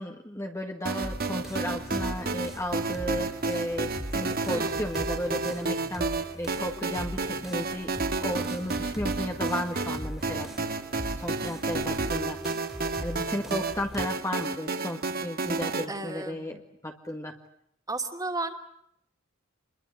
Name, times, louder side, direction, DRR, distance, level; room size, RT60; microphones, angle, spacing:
voice 1, 0.0-10.8 11.1-12.4 13.0-17.4, left 1 dB, 15° left, 2 dB, 1.9 m, -34 dB
sound 1, 0.9-15.9, right 3 dB, 50° right, 1.9 m, -31 dB
sound 2, 1.0-14.0, equal, ahead, 3.2 m, -41 dB
voice 2, 4.5-4.9 15.9-16.5 17.9-18.5, right 2 dB, 20° right, 5 dB, 2.9 m, -34 dB
28.0 x 22.5 x 7.9 m, 0.74 s
head